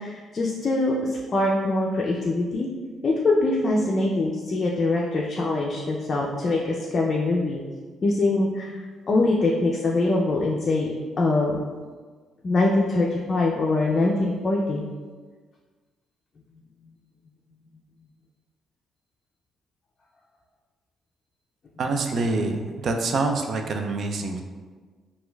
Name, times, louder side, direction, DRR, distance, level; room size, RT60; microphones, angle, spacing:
voice 1, 0.0-2.7 3.0-7.6 8.0-10.9 11.2-11.6 12.4-14.8, left 2 dB, 45° left, -2 dB, 0.4 m, -23 dB
voice 2, 21.8-24.4, right 3 dB, 60° right, 4 dB, 0.3 m, -26 dB
4.3 x 2.3 x 2.2 m, 1.5 s
cardioid pair, 90°, 0 cm